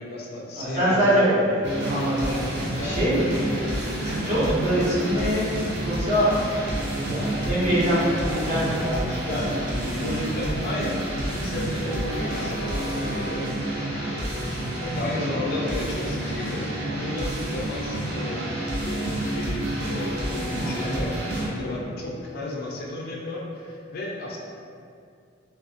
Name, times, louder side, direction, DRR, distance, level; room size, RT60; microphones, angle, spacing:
voice 1, 0.0-1.1 1.5-1.6 2.2-3.0 9.2-9.5 9.8-13.7 14.1-14.3 14.8-18.4 18.8-24.4, left 2 dB, 50° left, -2 dB, 0.3 m, -33 dB
voice 2, 0.6-2.3 2.8-3.6 4.0-6.3 7.0-10.2 20.6-20.9, equal, 40° right, -10 dB, 0.9 m, -24 dB
sound 1, 1.6-21.5, right 1 dB, 60° right, 0.5 m, -29 dB
Train, 5.4-13.7, equal, 5° right, 0.5 m, -41 dB
2.4 x 2.3 x 2.4 m, 2.4 s
head